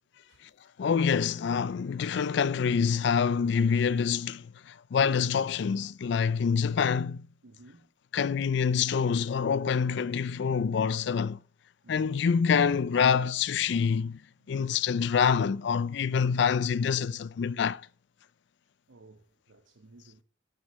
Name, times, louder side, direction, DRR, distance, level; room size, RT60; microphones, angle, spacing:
voice 1, 0.8-7.2 8.1-11.4 11.9-14.2 14.5-17.8, left 6 dB, 60° left, 0.4 m, -26 dB
voice 2, 7.4-7.9 11.8-12.3 14.4-14.6 17.4-17.5 18.9-20.2, right 2 dB, 80° right, 0.8 m, -55 dB
8.0 x 6.5 x 5.5 m
head